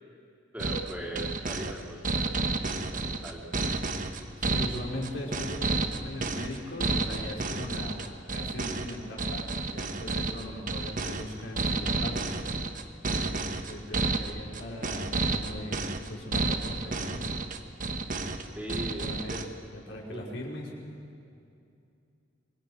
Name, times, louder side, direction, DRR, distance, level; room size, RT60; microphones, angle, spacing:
voice 1, 0.5-3.5 18.6-19.5 20.1-20.2, right 1 dB, 10° right, -3 dB, 3.9 m, -40 dB
sound 1, 0.6-19.5, right 3 dB, 40° right, 1.3 m, -31 dB
voice 2, 4.4-12.3 13.2-17.5 18.9-19.3 19.8-20.9, left 1 dB, 60° left, -3 dB, 4.9 m, -39 dB
26.5 x 23.5 x 6.3 m, 2.5 s
head